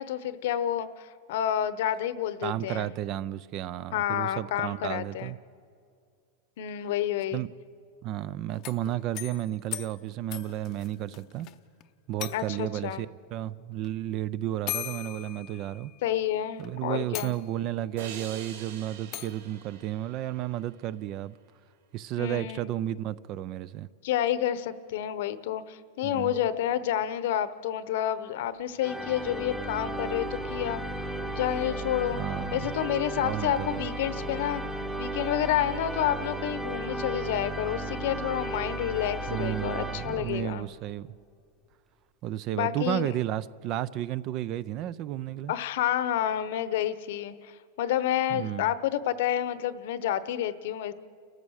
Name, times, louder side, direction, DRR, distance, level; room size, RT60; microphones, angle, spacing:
voice 1, 0.0-2.9 3.9-5.3 6.6-7.4 12.3-13.0 16.0-17.3 22.2-22.7 24.0-30.8 31.3-32.2 32.5-34.6 35.0-40.6 42.5-43.1 45.5-47.5 47.8-50.9, left 11 dB, 60° left, 14 dB, 0.9 m, -29 dB
voice 2, 2.4-5.4 7.3-7.5 8.0-11.5 12.1-15.9 16.6-21.3 21.9-23.9 26.0-26.4 32.1-32.7 33.2-33.8 39.3-41.1 42.2-45.5 48.3-48.7, right 13 dB, 30° right, 19 dB, 0.4 m, -32 dB
sound 1, 8.5-11.6 11.8-11.9 12.2-12.8 13.8-13.9 14.7-16.1 16.6-16.7 17.1-17.8 19.1-19.5, left 13 dB, 30° left, 0.7 m, -39 dB
sound 2, 18.0-21.3, right 8 dB, 65° right, 2.1 m, -46 dB
sound 3, 28.8-40.8, right 1 dB, 5° right, 1.0 m, -35 dB
30.0 x 14.0 x 6.4 m, 2.3 s
supercardioid pair, 170°, 0 cm